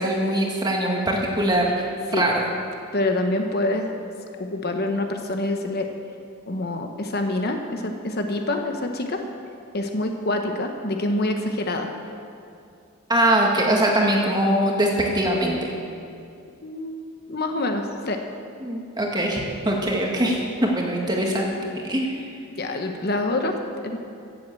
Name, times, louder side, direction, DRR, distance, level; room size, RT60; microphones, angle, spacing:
voice 1, 0.0-1.8 2.1-2.4 13.1-15.6 18.6-21.6 21.8-22.1, right 1 dB, 20° right, -1 dB, 1.8 m, -22 dB
voice 2, 2.9-3.9 4.4-5.9 6.5-9.2 9.7-11.9 16.6-18.2 22.6-24.0, left 2 dB, 45° left, 4 dB, 0.9 m, -26 dB
16.5 x 7.8 x 7.6 m, 2.5 s
head